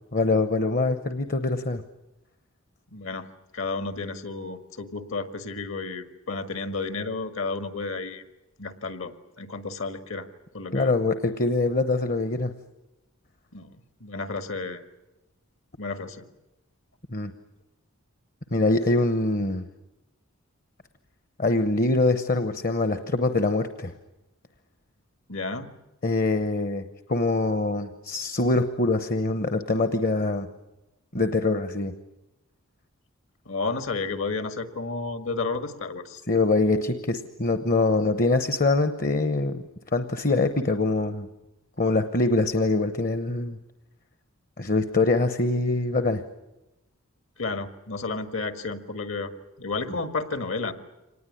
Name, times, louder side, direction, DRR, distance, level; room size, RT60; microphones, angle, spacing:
voice 1, 0.1-1.8 10.7-12.5 17.1-17.3 18.5-19.6 21.4-23.9 26.0-26.8 27.1-30.5 31.1-31.9 36.3-39.7 39.9-41.3 41.8-43.6 44.6-46.2 49.9-50.0, left 2 dB, 40° left, 10 dB, 0.9 m, -24 dB
voice 2, 2.9-3.3 3.5-8.2 8.6-9.1 9.4-10.3 10.5-10.9 13.5-13.7 14.0-14.8 15.8-16.2 25.3-25.7 33.5-36.2 47.4-49.3 49.6-50.7, left 3 dB, 65° left, 9 dB, 1.9 m, -32 dB
25.5 x 19.5 x 10.0 m, 0.99 s
head